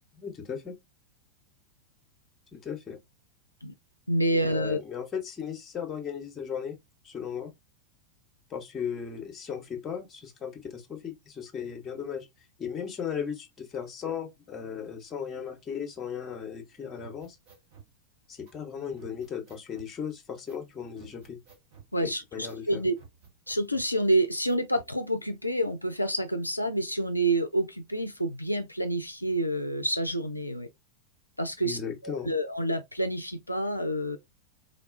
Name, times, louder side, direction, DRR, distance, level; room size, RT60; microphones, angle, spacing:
voice 1, 0.2-0.8 2.5-3.0 4.3-6.8 7.0-7.5 8.5-12.3 12.6-17.4 18.3-21.4 22.0-22.8 31.6-32.3, left 7 dB, 25° left, 0.9 m, -36 dB
voice 2, 4.1-4.8 21.9-22.9 23.5-30.7 31.4-34.2, right 1 dB, 85° left, 0.3 m, -28 dB
sound 1, 17.0-17.9 18.5-18.6 19.0-19.9 20.5-20.7 21.0-21.9 22.5-22.6 23.0-23.9 24.5-24.9, right 6 dB, 50° right, 1.1 m, -53 dB
3.7 x 2.3 x 2.4 m
figure-of-eight pair, 90°, 0 cm